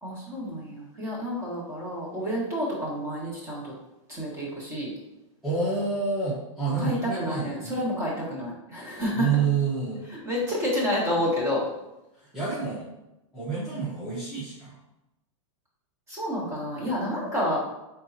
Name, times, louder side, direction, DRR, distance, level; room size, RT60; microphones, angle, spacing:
voice 1, 0.0-3.7 4.1-4.9 6.8-9.3 10.1-11.6 16.1-17.6, equal, 15° right, -5 dB, 1.6 m, -29 dB
voice 2, 5.4-7.8 9.2-10.1 12.2-12.9 13.3-14.8, right 5 dB, ahead, -11 dB, 0.9 m, -28 dB
4.7 x 3.7 x 2.8 m, 0.93 s
supercardioid pair, 150°, 17 cm